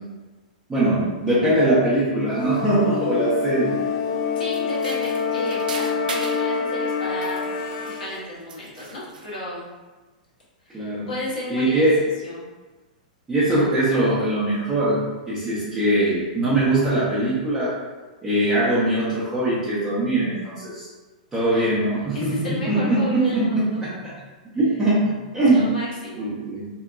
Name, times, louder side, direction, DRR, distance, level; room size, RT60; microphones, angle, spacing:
voice 1, 0.7-3.7 10.7-11.1 11.5-12.0 13.3-17.8 18.2-20.9 21.3-24.1 24.5-25.7 26.2-26.7, right 1 dB, 15° right, -10 dB, 0.7 m, -21 dB
sound 1, 2.4-8.2, left 5 dB, 45° left, 0.4 m, -26 dB
voice 2, 4.3-7.4 7.8-9.7 10.7-11.8 12.2-12.4 21.5-21.7 22.1-23.8 25.5-26.3, left 2 dB, 85° left, -6 dB, 1.0 m, -33 dB
sound 2, 4.5-6.5 7.0-8.2 8.5-9.4, right 4 dB, 85° right, 0.3 m, -38 dB
2.8 x 2.1 x 2.4 m, 1.2 s
hypercardioid pair, 125°, 4 cm